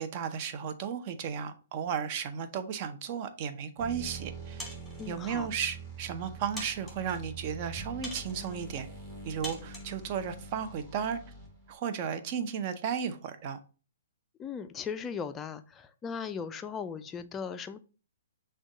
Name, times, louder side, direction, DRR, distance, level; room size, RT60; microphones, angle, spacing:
voice 1, 0.0-4.6 5.1-8.9 9.2-11.2 11.7-13.6, right 7 dB, 40° right, 0.6 m, -34 dB
sound 1, 3.8-11.8, right 3 dB, 25° right, 1.4 m, -45 dB
sound 2, 4.6-5.1 5.9-6.0 6.6-7.2 8.0-8.6 9.4-10.0, left 1 dB, ahead, 1.4 m, -43 dB
voice 2, 5.0-5.5 14.4-17.8, left 6 dB, 20° left, 0.3 m, -38 dB
6.1 x 2.3 x 3.7 m
hypercardioid pair, 130°, 0 cm